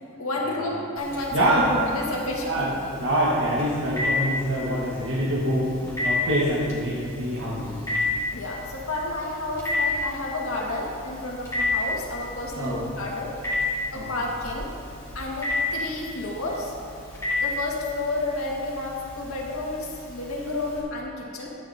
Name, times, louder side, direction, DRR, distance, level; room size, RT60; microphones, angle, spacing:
voice 1, 0.2-1.6 1.9-3.0 8.3-13.3 13.9-14.7 15.1-16.7 17.4-21.5, left 2 dB, 90° left, -2 dB, 1.9 m, -31 dB
Telephone, 1.0-20.8, left 2 dB, 15° left, 2.4 m, -32 dB
voice 2, 1.3-1.8 2.4-2.7 3.0-7.8 12.6-12.8 13.9-14.1, right 1 dB, 65° right, -7 dB, 1.6 m, -25 dB
13.5 x 9.8 x 2.9 m, 2.5 s
head